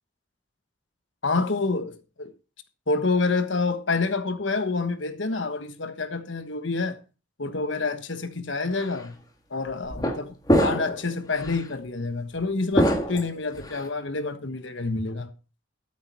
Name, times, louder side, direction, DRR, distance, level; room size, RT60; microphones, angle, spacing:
voice 1, 1.2-2.3 2.9-7.0 7.4-9.1 9.5-15.3, left 3 dB, 70° left, 1.4 m, -28 dB
sound 1, 8.8-9.0 9.9-10.2 10.5-11.0 11.4-11.6 12.7-13.8, equal, 20° left, 1.9 m, -23 dB
13.0 x 8.7 x 4.4 m
head